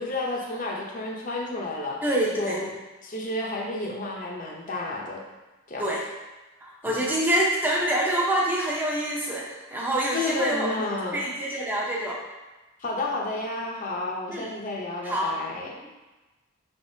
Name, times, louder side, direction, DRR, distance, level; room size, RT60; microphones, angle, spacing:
voice 1, 0.0-2.0 2.3-2.7 3.0-5.2 5.7-5.8 6.8-7.0 10.1-11.2 12.8-15.7, left 2 dB, 35° left, -2 dB, 0.7 m, -31 dB
voice 2, 2.0-2.7 5.8-6.0 6.6-10.8 11.1-12.2 14.3-14.5 15.0-15.3, right 1 dB, 10° right, -4 dB, 0.6 m, -26 dB
5.3 x 3.5 x 2.7 m, 1.1 s
head